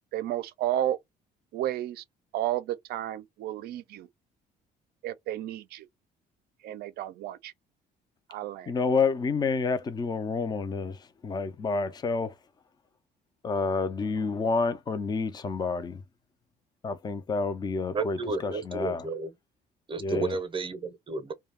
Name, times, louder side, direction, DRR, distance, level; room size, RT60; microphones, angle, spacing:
voice 1, 0.1-1.0 1.5-2.0 2.3-4.1 5.0-5.9 6.6-7.5 8.3-8.7, right 12 dB, 70° right, 0.4 m, -32 dB
voice 2, 8.7-11.0 11.2-12.3 13.4-16.0 16.8-18.2 18.4-19.0 20.0-20.3, left 4 dB, 25° left, 0.5 m, -29 dB
voice 3, 17.9-19.3 19.9-21.3, right 3 dB, 30° right, 0.7 m, -32 dB
2.3 x 2.2 x 3.4 m
cardioid pair, 110°, 17 cm